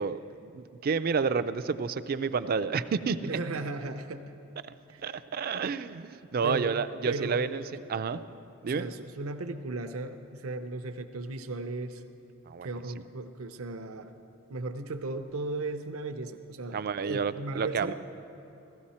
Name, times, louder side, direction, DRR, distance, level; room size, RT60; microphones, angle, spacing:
voice 1, 0.0-3.4 5.0-7.6 7.9-8.2 8.6-8.9 12.5-12.7 16.7-17.9, right 5 dB, 45° right, 12 dB, 0.4 m, -30 dB
voice 2, 3.2-4.3 4.9-5.0 5.5-5.6 6.4-6.7 7.0-7.6 8.6-12.0 12.6-14.1 14.5-17.9, right 3 dB, 80° right, 7 dB, 0.7 m, -36 dB
15.5 x 15.0 x 4.3 m, 2.8 s
head